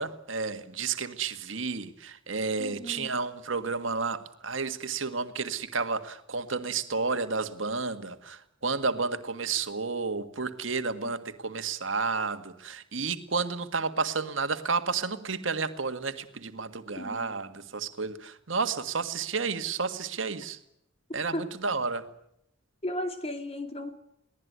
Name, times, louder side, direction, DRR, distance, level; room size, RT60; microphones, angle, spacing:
voice 1, 0.0-20.6 21.1-22.0, right 4 dB, 80° right, 1.7 m, -31 dB
voice 2, 2.6-3.2 11.0-11.1 17.0-17.3 21.3-21.5 22.8-23.9, left 1 dB, 30° left, 2.6 m, -35 dB
23.0 x 17.5 x 9.5 m
head